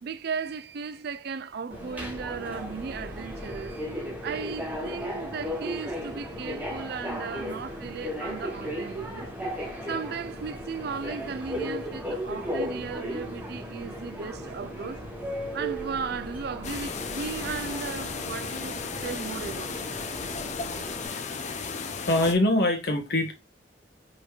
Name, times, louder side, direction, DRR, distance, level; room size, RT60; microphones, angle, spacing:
voice 1, 0.0-3.9 4.2-9.3 9.9-15.0 15.5-19.9, right 5 dB, 60° right, 0.4 m, -36 dB
Subway metro underground, 1.7-21.1, equal, 10° right, 1.5 m, -36 dB
sound 1, 16.6-22.4, left 5 dB, 40° left, 0.6 m, -35 dB
voice 2, 21.0-21.7 22.1-23.3, left 1 dB, 60° left, 1.5 m, -25 dB
5.2 x 4.4 x 2.3 m
head